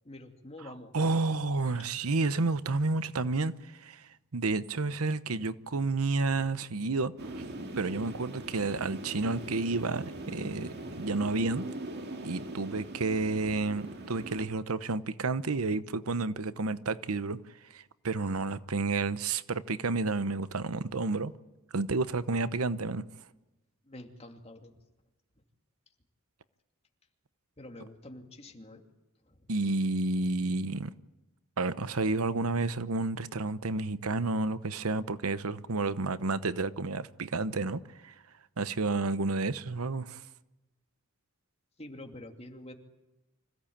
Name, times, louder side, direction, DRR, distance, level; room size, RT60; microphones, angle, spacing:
voice 1, 0.0-0.9 1.7-1.9 23.8-24.7 27.6-28.8 29.2-29.5 41.8-42.7, left 1 dB, 30° left, 2.7 m, -47 dB
voice 2, 0.9-7.4 7.8-11.6 12.2-17.4 17.7-21.3 21.7-23.0 29.5-30.9 31.6-38.1 38.6-40.2, right 3 dB, 90° right, 0.9 m, -30 dB
sound 1, 7.2-14.5, right 1 dB, 50° right, 2.4 m, -41 dB
26.0 x 16.5 x 8.7 m
head